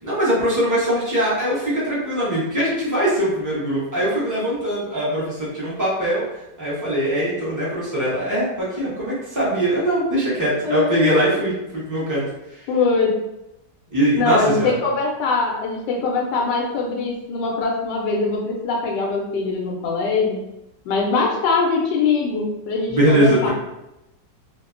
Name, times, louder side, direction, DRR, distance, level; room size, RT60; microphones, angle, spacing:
voice 1, 0.0-6.3 6.6-12.2 12.5-12.6 13.9-14.8 22.9-23.5, right 1 dB, 20° right, -8 dB, 0.6 m, -21 dB
voice 2, 10.6-11.1 12.7-13.2 14.2-20.4 20.9-23.5, left 4 dB, 85° left, 0 dB, 1.2 m, -22 dB
3.2 x 2.1 x 2.4 m, 0.90 s
omnidirectional pair, 1.8 m